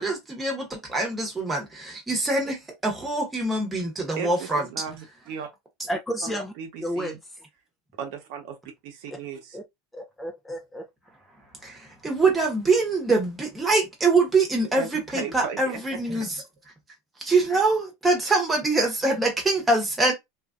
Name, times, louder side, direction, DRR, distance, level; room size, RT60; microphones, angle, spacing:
voice 1, 0.0-4.7 11.6-16.4 17.2-20.1, right 3 dB, 10° right, 1.0 m, -24 dB
voice 2, 4.2-5.5 6.2-7.2 8.0-8.6 8.8-9.6 14.7-14.9 15.1-16.0, right 7 dB, 65° right, 0.9 m, -36 dB
voice 3, 5.9-6.5 6.8-7.5 9.1-9.2 9.5-9.6 9.9-10.9, equal, 10° left, 0.5 m, -32 dB
3.0 x 2.5 x 2.4 m
supercardioid pair, 135°, 0 cm